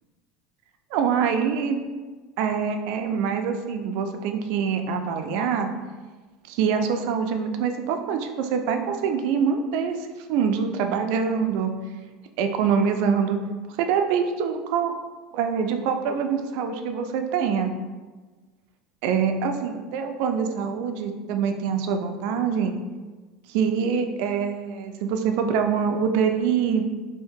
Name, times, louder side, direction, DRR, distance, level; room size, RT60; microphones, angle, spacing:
voice 1, 0.9-1.8 2.4-5.7 6.5-10.0 10.3-11.7 12.4-13.4 13.8-14.9 15.3-17.7 19.0-22.7 23.5-26.8, right 6 dB, 65° right, 6 dB, 0.4 m, -24 dB
2.7 x 2.7 x 3.6 m, 1.3 s
supercardioid pair, 140°, 0 cm